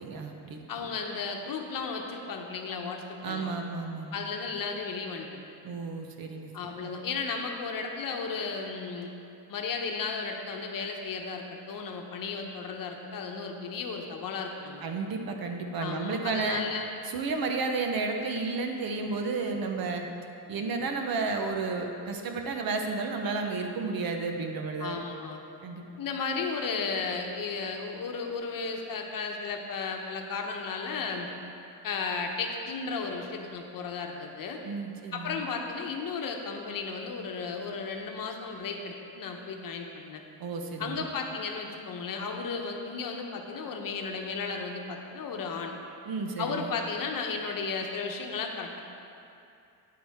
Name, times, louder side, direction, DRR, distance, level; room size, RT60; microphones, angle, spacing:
voice 1, 0.0-0.6 3.2-4.2 5.6-6.5 6.8-6.9 14.8-16.6 17.0-20.1 20.5-25.0 25.6-25.8 34.6-35.4 40.4-41.1 46.1-46.7, right 4 dB, 60° right, 4 dB, 0.9 m, -32 dB
voice 2, 0.7-3.5 4.1-5.4 6.5-9.1 9.5-14.8 15.8-16.8 24.8-25.4 26.0-31.3 31.8-34.6 35.1-40.2 40.8-45.7 46.4-48.8, left 4 dB, 55° left, 3 dB, 0.9 m, -34 dB
9.5 x 8.5 x 3.6 m, 2.6 s
cardioid pair, 140°, 40 cm